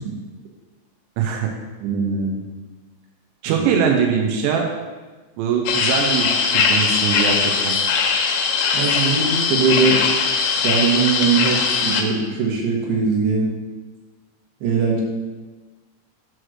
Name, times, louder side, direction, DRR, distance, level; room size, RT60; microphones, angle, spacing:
voice 1, 1.2-1.5 3.4-4.7 5.4-7.8, right 6 dB, 85° right, 1 dB, 2.5 m, -21 dB
voice 2, 1.8-2.4 3.5-3.6 8.7-10.0 10.6-13.5 14.6-15.0, right 5 dB, 70° right, -2 dB, 2.8 m, -21 dB
sound 1, 5.7-12.0, left 5 dB, 80° left, 2.7 m, -20 dB
7.5 x 3.2 x 6.2 m, 1.3 s
omnidirectional pair, 5.7 m